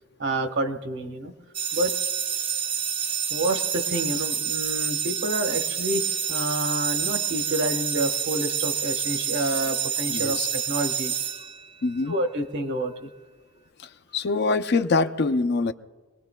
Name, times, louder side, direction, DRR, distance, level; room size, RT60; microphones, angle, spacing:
voice 1, 0.2-1.3 1.7-1.9 3.3-11.1 12.1-13.1, right 1 dB, 60° right, 6 dB, 1.2 m, -28 dB
sound 1, 1.5-12.0, right 8 dB, 25° right, 0.5 m, -28 dB
voice 2, 10.1-10.5 11.8-12.1 14.1-15.7, left 3 dB, 55° left, 9 dB, 0.5 m, -24 dB
25.5 x 19.5 x 2.2 m, 1.3 s
head